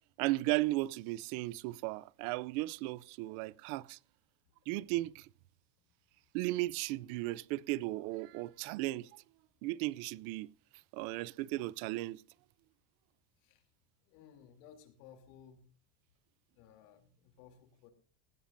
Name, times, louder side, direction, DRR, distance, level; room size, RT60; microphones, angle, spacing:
voice 1, 0.2-4.0 4.7-5.3 6.3-9.2 9.6-10.5 10.9-12.2, right 19 dB, 70° right, 0.6 m, -35 dB
voice 2, 14.0-15.7 16.5-17.9, left 8 dB, 85° left, 3.1 m, -58 dB
18.5 x 16.0 x 2.6 m
cardioid pair, 170°, 46 cm